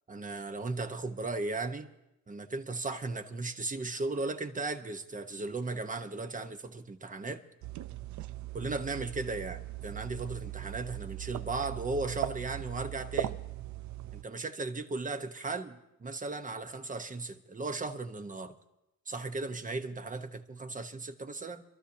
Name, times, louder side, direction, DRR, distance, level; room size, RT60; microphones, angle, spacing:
voice 1, 0.1-1.9 2.3-7.4 8.5-13.4 14.1-18.5 19.1-21.6, right 3 dB, 25° right, 1.1 m, -36 dB
sound 1, 7.6-14.2, right 13 dB, 70° right, 0.6 m, -39 dB
26.0 x 13.0 x 2.8 m
cardioid pair, 90°, 30 cm